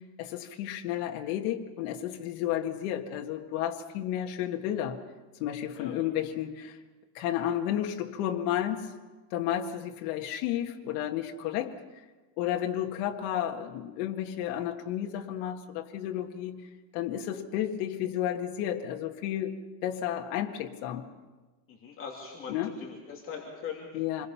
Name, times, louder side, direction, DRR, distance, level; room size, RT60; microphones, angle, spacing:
voice 1, 0.0-5.0 5.4-6.8 7.1-8.9 9.3-11.8 12.4-16.6 16.9-21.1 22.5-22.8 23.9-24.3, left 11 dB, 75° left, 3 dB, 1.9 m, -32 dB
voice 2, 21.7-22.5 22.8-23.9, left 6 dB, 30° left, -2 dB, 3.0 m, -40 dB
27.5 x 21.5 x 5.8 m, 1.2 s
cardioid pair, 180°, 45 cm